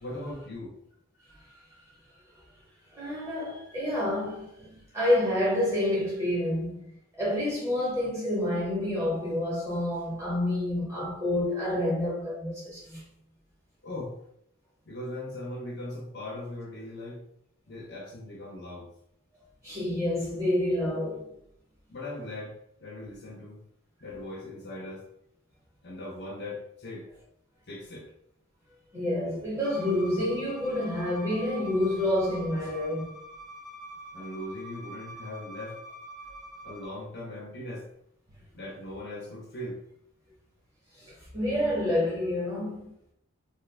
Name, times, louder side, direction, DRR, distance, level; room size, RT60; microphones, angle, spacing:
voice 1, 0.0-0.8 13.8-14.2 14.9-17.3 17.7-18.9 21.9-23.6 24.0-25.1 25.8-27.1 27.7-28.1 34.1-35.8 36.6-37.9 38.5-39.8, left 1 dB, 50° left, 0.7 m, -39 dB
voice 2, 2.9-6.8 7.2-13.0 19.6-21.3 28.9-33.1 41.0-42.9, left 1 dB, 15° right, 1.2 m, -28 dB
Bowed string instrument, 29.6-36.9, equal, 55° right, 1.0 m, -45 dB
2.5 x 2.5 x 3.2 m
head